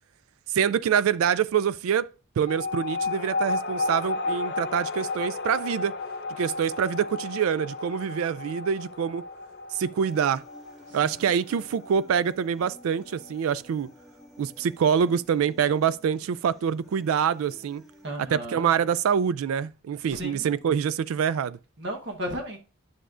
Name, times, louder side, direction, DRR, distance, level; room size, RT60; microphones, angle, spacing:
voice 1, 0.5-2.1 2.4-6.0 6.4-9.3 9.7-10.4 10.9-13.9 14.4-17.8 18.3-21.6, right 7 dB, 85° right, 0.3 m, -25 dB
sound 1, 2.5-13.4, left 3 dB, 50° left, 0.5 m, -33 dB
Human voice, 10.1-18.1, left 1 dB, ahead, 0.9 m, -53 dB
voice 2, 18.0-18.7 20.1-20.5 21.8-22.6, equal, 55° right, 1.1 m, -34 dB
9.1 x 6.2 x 2.5 m
head